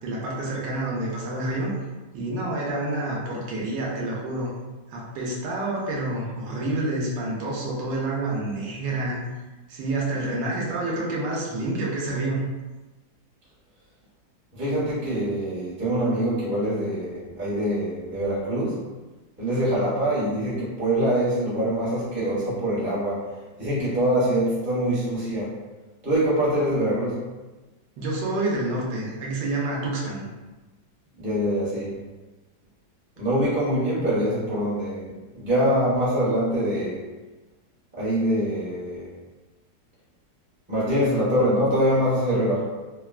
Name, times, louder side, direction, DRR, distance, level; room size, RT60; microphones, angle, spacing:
voice 1, 0.0-1.7 2.1-4.5 4.9-9.2 9.7-12.4 28.0-30.3, right 2 dB, 75° right, -3 dB, 1.3 m, -28 dB
voice 2, 14.5-18.8 19.4-23.3 23.6-25.5 26.0-27.2 31.2-32.0 33.2-37.1 37.9-39.1 40.7-42.7, equal, 15° right, -9 dB, 0.4 m, -24 dB
3.4 x 2.2 x 2.3 m, 1.2 s
omnidirectional pair, 2.0 m